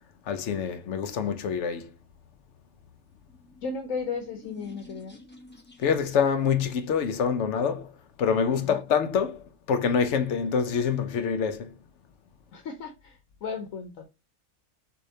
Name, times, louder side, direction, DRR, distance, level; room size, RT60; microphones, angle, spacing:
voice 1, 0.3-1.9 5.8-7.9 8.2-9.4 9.7-11.7, left 6 dB, 65° left, 0.9 m, -26 dB
sound 1, 3.3-6.2, left 2 dB, 10° left, 0.7 m, -49 dB
voice 2, 3.6-5.2 8.6-8.8 12.5-14.1, left 5 dB, 85° left, 1.2 m, -35 dB
6.4 x 2.8 x 2.7 m
omnidirectional pair, 1.4 m